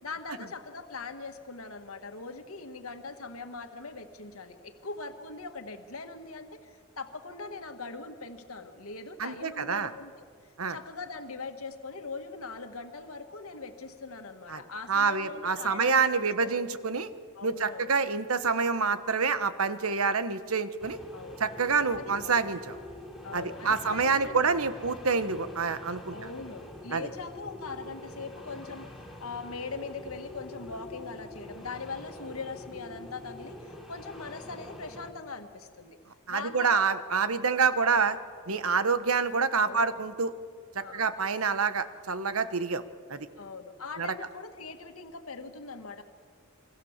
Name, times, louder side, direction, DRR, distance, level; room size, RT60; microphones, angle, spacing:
voice 1, 0.0-10.1 10.4-16.0 16.4-16.5 17.3-18.0 20.0-20.3 21.1-21.5 21.9-22.3 23.2-24.4 26.1-28.9 29.2-36.0 36.3-37.0 37.7-38.0 39.5-40.1 40.8-41.1 43.4-46.0, left 4 dB, 80° left, 6 dB, 1.7 m, -41 dB
voice 2, 9.2-9.9 10.6-10.8 14.5-14.6 14.9-17.1 17.4-21.0 21.4-22.8 23.3-26.1 26.9-27.1 36.3-38.2 38.5-40.3 40.7-42.8 43.1-43.3 44.0-44.1, right 5 dB, 85° right, 12 dB, 1.3 m, -27 dB
sound 1, 20.8-35.1, left 1 dB, ahead, 3.6 m, -45 dB
28.5 x 24.0 x 7.4 m, 2.1 s
head